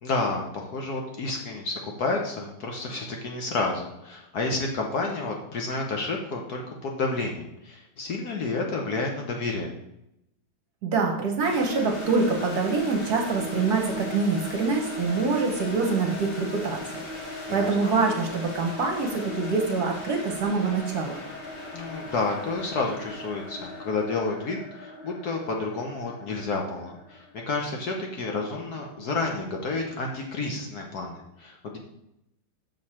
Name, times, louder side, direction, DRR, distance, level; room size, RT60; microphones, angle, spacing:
voice 1, 0.0-9.7 17.5-17.9 21.7-31.8, left 3 dB, 55° left, 1 dB, 1.3 m, -30 dB
voice 2, 10.8-16.8 17.2-21.2, right 4 dB, 55° right, 2 dB, 1.3 m, -25 dB
sound 1, 11.4-28.3, left 2 dB, 30° left, 1.5 m, -38 dB
6.5 x 6.3 x 4.3 m, 0.83 s
omnidirectional pair, 2.3 m